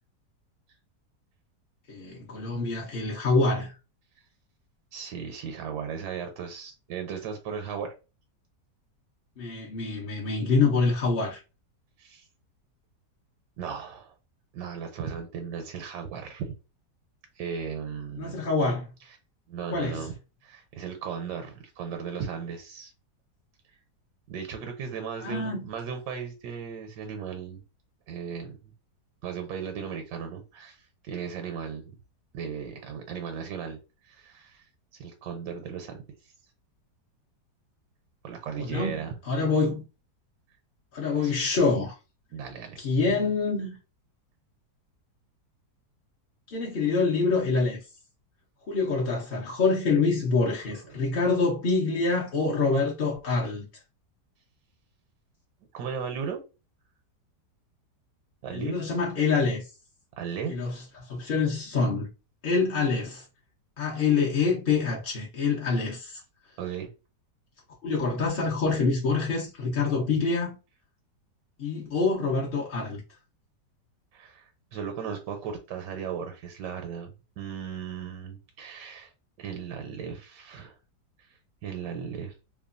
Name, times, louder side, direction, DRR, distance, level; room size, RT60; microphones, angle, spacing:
voice 1, 1.9-3.8 9.4-11.4 18.2-18.9 19.7-20.1 25.2-25.7 38.6-39.8 40.9-41.9 42.8-43.7 46.5-47.8 48.7-53.7 58.5-59.7 60.5-62.1 62.4-63.2 63.8-66.2 67.8-70.6 71.6-73.0, left 4 dB, 60° left, 0.5 m, -26 dB
voice 2, 4.9-7.9 12.0-12.3 13.6-14.1 14.5-16.5 17.4-18.4 19.5-20.1 20.4-22.9 24.3-27.6 28.1-28.7 29.2-31.9 32.3-33.8 34.0-34.6 35.0-36.0 38.2-39.2 41.1-41.3 42.3-42.8 50.9-51.0 55.7-56.4 58.4-58.7 60.2-60.5 66.6-66.9 74.1-79.1 79.4-80.7 81.6-82.3, right 7 dB, 80° right, 1.2 m, -36 dB
2.9 x 2.2 x 2.4 m
omnidirectional pair, 1.8 m